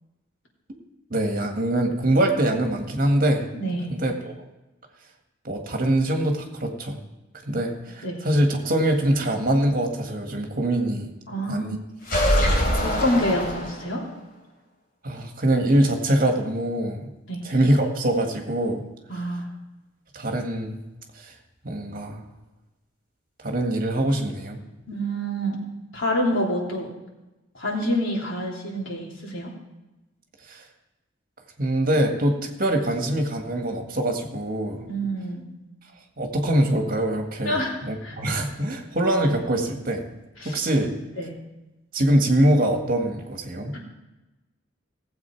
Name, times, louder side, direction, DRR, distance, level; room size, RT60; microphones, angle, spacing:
voice 1, 1.1-3.5 3.9-4.3 5.4-7.0 7.5-11.1 11.5-11.8 15.0-17.1 17.4-18.8 20.1-20.8 21.2-21.3 21.6-22.2 23.4-24.6 30.5-30.6 31.6-34.9 36.2-40.1 40.4-41.0 41.9-43.8, right 1 dB, 50° right, 3 dB, 1.8 m, -23 dB
voice 2, 3.5-3.9 7.5-7.6 8.0-8.2 11.3-11.8 12.5-14.0 17.3-17.4 19.1-19.5 24.9-25.6 25.9-26.9 27.5-29.5 34.8-35.5 37.4-37.7 38.0-38.1 40.4-40.6 41.2-41.3 43.7-43.8, equal, 90° left, -3 dB, 3.2 m, -27 dB
sound 1, 12.0-14.1, equal, 55° left, 4.0 m, -23 dB
18.0 x 7.9 x 4.6 m, 1.0 s
head